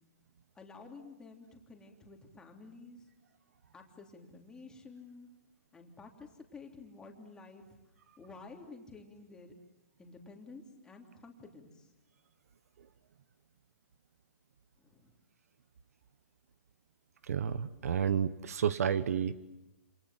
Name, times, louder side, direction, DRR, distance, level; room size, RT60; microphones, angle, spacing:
voice 1, 0.5-3.0 3.7-5.3 5.7-7.6 8.2-9.5 10.0-11.8 14.8-15.1, left 3 dB, 10° left, 2 dB, 3.3 m, -51 dB
voice 2, 17.3-19.3, right 8 dB, 70° right, 15 dB, 1.3 m, -30 dB
28.0 x 27.0 x 7.6 m, 0.95 s
hypercardioid pair, 150°, 8 cm